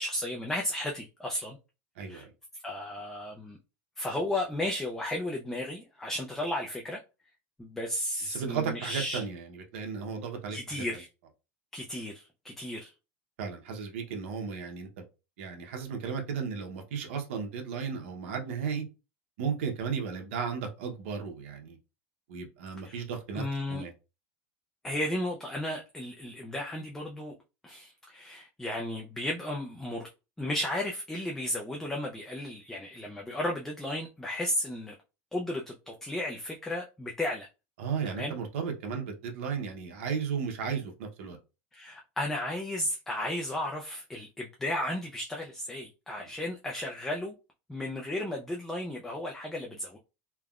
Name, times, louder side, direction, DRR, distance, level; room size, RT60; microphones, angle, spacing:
voice 1, 0.0-1.6 2.1-2.3 2.6-3.6 4.0-7.0 7.6-9.2 10.5-11.1 11.7-12.9 22.8-23.0 23.3-23.8 24.8-27.3 27.6-30.1 30.4-34.9 35.3-37.5 38.2-38.4 41.7-47.3 47.7-50.0, left 1 dB, 5° left, 0.3 m, -34 dB
voice 2, 2.0-2.3 8.3-10.8 13.4-15.0 15.4-18.8 19.4-21.8 22.3-23.4 23.7-23.9 37.8-41.4, right 6 dB, 80° right, 0.8 m, -34 dB
3.3 x 2.1 x 2.3 m
supercardioid pair, 160°, 7 cm